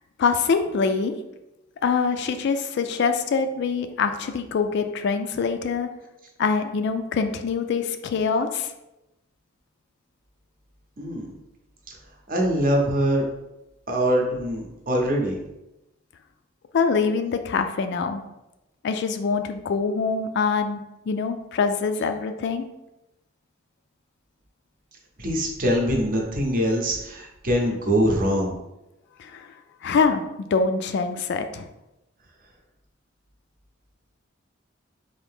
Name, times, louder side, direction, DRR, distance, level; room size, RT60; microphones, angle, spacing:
voice 1, 0.2-1.2 1.8-5.9 6.4-8.7 16.7-18.2 18.8-22.7 29.2-29.5 29.8-31.6, left 5 dB, 55° left, 8 dB, 0.3 m, -24 dB
voice 2, 11.0-11.3 12.3-13.3 13.9-15.4 25.2-28.6, equal, 45° right, 0 dB, 0.7 m, -23 dB
3.8 x 2.7 x 3.5 m, 0.94 s
head